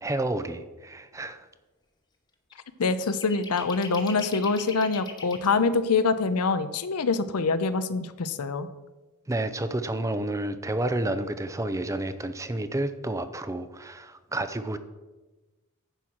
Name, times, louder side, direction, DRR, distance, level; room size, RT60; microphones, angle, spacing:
voice 1, 0.0-1.5 9.3-14.8, right 1 dB, 15° right, 11 dB, 0.5 m, -30 dB
sound 1, 2.5-2.6 3.0-5.5, left 4 dB, 20° left, 1.0 m, -40 dB
voice 2, 2.8-8.7, left 4 dB, 85° left, 12 dB, 0.7 m, -25 dB
10.0 x 4.7 x 7.2 m, 1.1 s
head